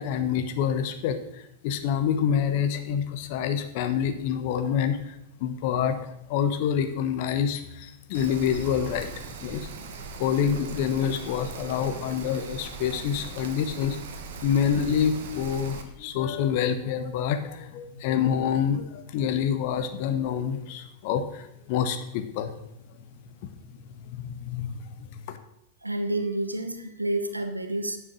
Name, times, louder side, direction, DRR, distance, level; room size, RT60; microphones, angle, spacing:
voice 1, 0.0-9.7 10.2-14.0 14.4-22.6 23.3-25.4, left 8 dB, 50° left, 9 dB, 1.2 m, -27 dB
Rain, 8.1-15.8, right 4 dB, 55° right, 1.4 m, -40 dB
voice 2, 25.8-28.0, right 1 dB, 85° right, 8 dB, 0.9 m, -29 dB
10.5 x 7.1 x 6.4 m, 0.80 s
figure-of-eight pair, 90°, 0 cm